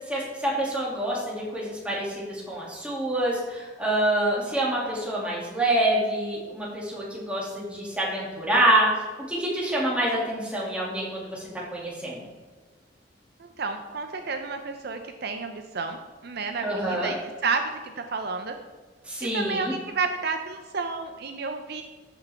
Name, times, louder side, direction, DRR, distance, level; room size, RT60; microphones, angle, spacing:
voice 1, 0.1-8.9 9.3-11.4 11.7-12.2 16.6-17.1 19.1-19.7, right 1 dB, 5° right, -5 dB, 2.4 m, -26 dB
voice 2, 13.4-17.2 17.4-18.5 19.3-21.8, right 4 dB, 60° right, 6 dB, 0.6 m, -31 dB
13.5 x 5.9 x 3.5 m, 1.3 s
head